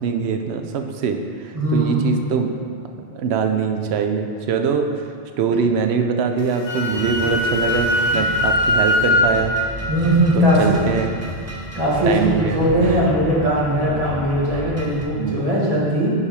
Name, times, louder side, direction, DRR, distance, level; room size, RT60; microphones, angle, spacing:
voice 1, 0.0-2.7 3.1-5.1 5.4-9.6 10.4-11.1 12.0-13.0 15.1-15.4, right 6 dB, 75° right, 5 dB, 0.8 m, -23 dB
voice 2, 1.5-2.1 8.1-8.2 9.9-10.8 11.7-16.1, equal, 35° right, -6 dB, 1.4 m, -19 dB
sound 1, 6.3-15.0, equal, 20° right, 0.6 m, -32 dB
Wind instrument woodwind instrument, 6.4-9.3, left 1 dB, 85° left, 1.0 m, -20 dB
5.6 x 4.7 x 4.8 m, 2.3 s
omnidirectional pair, 1.1 m